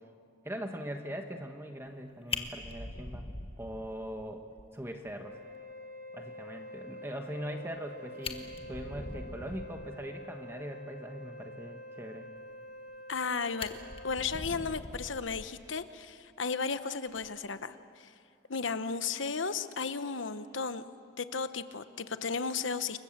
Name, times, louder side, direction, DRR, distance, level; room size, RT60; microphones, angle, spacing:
voice 1, 0.4-3.3 3.6-4.4 4.7-5.4 6.1-12.3, equal, 10° right, 4 dB, 1.2 m, -41 dB
Fire, 1.9-2.0 2.3-4.2 4.6-4.7 5.1-5.2 5.5-5.6 7.8-7.9 8.1-9.9 12.7-13.2 13.6-15.8 17.1-17.3, left 3 dB, 30° left, 1.5 m, -42 dB
Wind instrument woodwind instrument, 5.1-14.3, left 1 dB, 50° right, 5.5 m, -47 dB
voice 2, 13.1-13.7 14.0-18.1 18.5-20.8 21.2-23.0, left 5 dB, 75° left, 11 dB, 1.1 m, -34 dB
29.0 x 22.5 x 7.5 m, 2.5 s
head